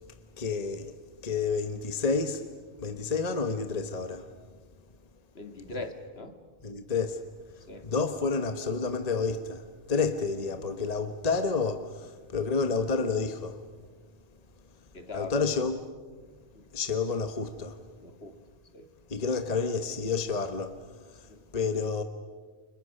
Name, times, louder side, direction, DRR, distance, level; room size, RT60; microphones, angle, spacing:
voice 1, 0.4-0.9 1.2-2.5 2.8-4.3 5.7-5.8 6.6-7.2 7.5-13.6 15.1-15.8 16.7-17.8 19.1-22.0, left 4 dB, 35° left, 1.2 m, -30 dB
voice 2, 5.4-6.4 7.7-7.9 14.9-15.3 16.6-16.7 18.0-18.4 18.7-18.9 21.3-21.4, left 3 dB, 65° left, 2.2 m, -40 dB
30.0 x 25.0 x 6.5 m
omnidirectional pair, 1.2 m